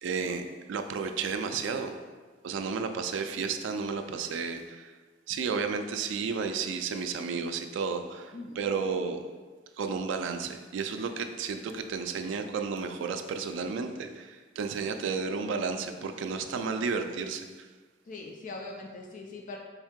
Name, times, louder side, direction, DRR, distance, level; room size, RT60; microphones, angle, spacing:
voice 1, 0.0-2.0 2.4-4.9 5.3-9.2 9.8-17.7, right 5 dB, 80° right, 7 dB, 0.3 m, -32 dB
voice 2, 18.1-19.6, left 2 dB, 45° left, 1 dB, 0.3 m, -41 dB
3.5 x 2.6 x 3.6 m, 1.4 s
head